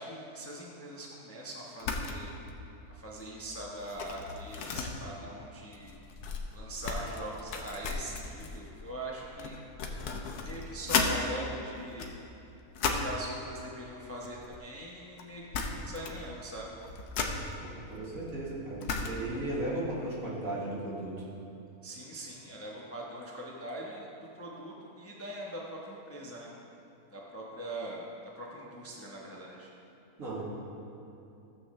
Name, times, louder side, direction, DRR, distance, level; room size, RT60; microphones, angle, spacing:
voice 1, 0.0-2.3 2.9-6.0 6.5-9.6 10.4-12.1 12.8-16.7 21.8-24.1 24.3-26.5 27.1-28.1 28.4-29.7, right 1 dB, 10° left, -4 dB, 0.8 m, -42 dB
sound 1, 1.8-2.2 2.5-2.7 3.1-11.2 11.8-13.2 14.1-14.9 15.2-15.3 15.5-16.3 16.6-19.4, left 4 dB, 85° left, 1.3 m, -35 dB
voice 2, 17.6-21.3 30.2-30.4, right 1 dB, 65° right, -7 dB, 2.5 m, -36 dB
15.0 x 7.4 x 3.2 m, 2.8 s
omnidirectional pair, 1.6 m